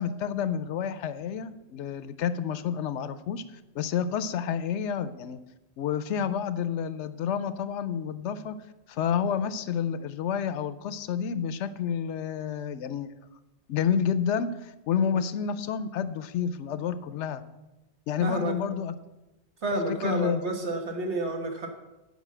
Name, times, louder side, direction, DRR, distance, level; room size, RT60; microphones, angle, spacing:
voice 1, 0.0-3.4 3.7-5.4 5.8-8.6 8.9-13.1 13.7-17.4 18.1-18.9 19.9-20.4, left 7 dB, 80° left, 14 dB, 0.9 m, -29 dB
voice 2, 18.2-18.5 19.6-21.7, right 2 dB, 75° right, 3 dB, 1.7 m, -30 dB
8.3 x 5.4 x 7.5 m, 1.0 s
omnidirectional pair, 1.2 m